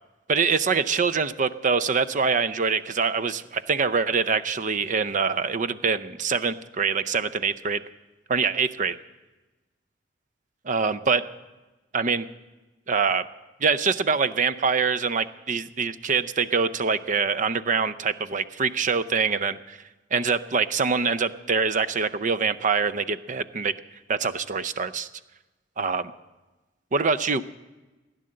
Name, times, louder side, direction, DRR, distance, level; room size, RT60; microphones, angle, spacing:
voice 1, 0.3-7.8 8.3-9.0 10.6-11.3 11.9-12.3 12.9-13.3 13.6-19.8 20.1-23.7 24.1-25.1 25.8-26.1 26.9-27.4, right 5 dB, 45° right, 15 dB, 0.6 m, -24 dB
16.0 x 10.5 x 7.7 m, 1.1 s
head